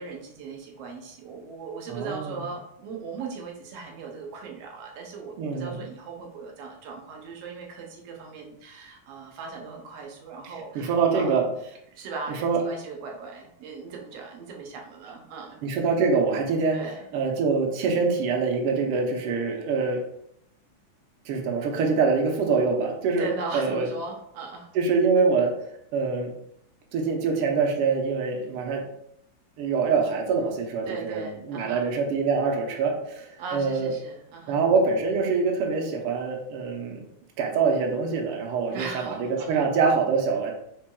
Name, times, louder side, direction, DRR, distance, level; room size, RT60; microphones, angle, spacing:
voice 1, 0.0-11.4 11.9-15.6 16.7-17.1 23.2-24.7 30.8-31.9 33.4-34.6 38.7-39.7, right 4 dB, 75° right, 1 dB, 1.5 m, -38 dB
voice 2, 1.9-2.3 5.4-5.8 10.7-11.4 12.4-12.6 15.6-16.8 17.1-20.0 21.3-23.3 23.5-23.9 24.7-25.5 25.9-26.3 26.9-28.8 29.6-33.9 34.5-37.0 37.4-40.5, right 4 dB, 90° right, 1 dB, 1.2 m, -24 dB
4.5 x 4.4 x 2.2 m, 0.74 s
omnidirectional pair, 3.5 m